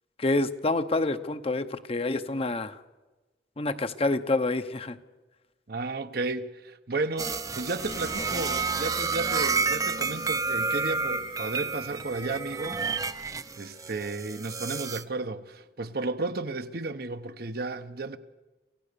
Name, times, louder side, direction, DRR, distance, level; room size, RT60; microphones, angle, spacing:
voice 1, 0.2-2.8 3.6-5.0, left 2 dB, 35° left, 0.8 m, -27 dB
voice 2, 5.7-12.9 13.6-18.2, right 3 dB, 60° right, 0.9 m, -33 dB
sound 1, 7.2-15.0, right 4 dB, 20° right, 0.6 m, -30 dB
sound 2, 7.8-14.1, left 1 dB, 70° left, 3.3 m, -45 dB
27.0 x 16.0 x 6.8 m
head